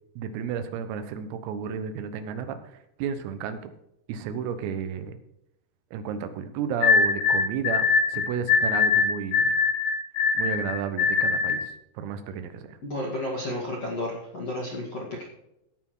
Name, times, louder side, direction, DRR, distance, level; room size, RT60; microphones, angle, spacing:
voice 1, 0.2-3.7 4.1-5.2 5.9-9.5 10.4-12.8, right 7 dB, 85° right, 9 dB, 3.7 m, -32 dB
sound 1, 6.8-11.7, left 5 dB, 75° left, 2.4 m, -22 dB
voice 2, 12.8-15.3, left 1 dB, 50° left, -3 dB, 1.8 m, -32 dB
17.0 x 6.1 x 4.6 m, 0.81 s
omnidirectional pair, 5.9 m